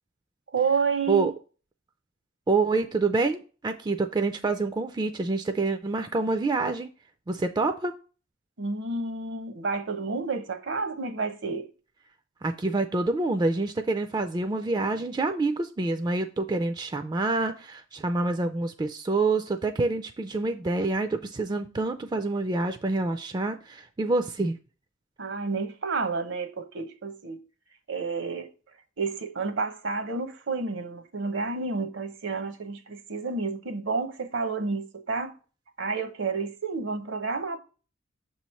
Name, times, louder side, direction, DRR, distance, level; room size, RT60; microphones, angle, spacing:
voice 1, 0.5-1.3 8.6-11.7 25.2-27.4 27.9-28.5 29.0-35.4 35.8-37.6, right 4 dB, 65° right, 0.8 m, -30 dB
voice 2, 2.5-6.9 7.3-7.9 12.4-24.6, right 3 dB, 20° right, 0.3 m, -27 dB
6.8 x 3.1 x 5.4 m
head